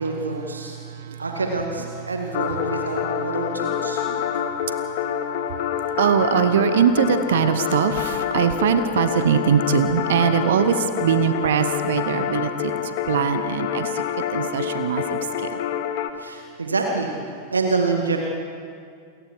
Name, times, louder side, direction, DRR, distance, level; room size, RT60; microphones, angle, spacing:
voice 1, 0.0-0.8 1.2-4.0 16.2-17.1 17.5-18.2, right 3 dB, 75° right, 2 dB, 2.1 m, -26 dB
voice 2, 0.8-1.2 3.8-4.2 6.0-12.7 13.1-14.0 14.3-15.6, right 8 dB, 60° right, 10 dB, 1.1 m, -22 dB
sound 1, 2.3-16.1, left 9 dB, 50° left, 1.4 m, -27 dB
28.5 x 22.5 x 4.7 m, 2.2 s
figure-of-eight pair, 90°, 0 cm